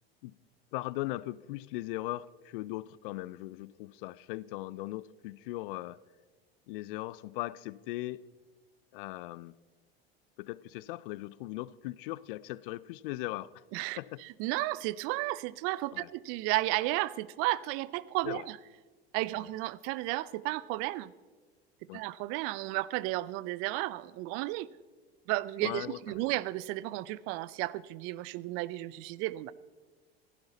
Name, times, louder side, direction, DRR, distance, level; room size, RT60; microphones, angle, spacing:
voice 1, 0.7-6.0 6.7-8.3 8.9-9.5 10.4-13.6 14.0-14.2 15.9-16.1 18.2-18.4 21.9-22.0 25.6-26.2, left 18 dB, 60° left, 0.4 m, -39 dB
voice 2, 13.7-18.6 19.1-21.1 21.9-24.7 25.3-29.5, right 18 dB, 45° right, 0.5 m, -33 dB
15.5 x 11.0 x 4.0 m
hypercardioid pair, 80°, 31 cm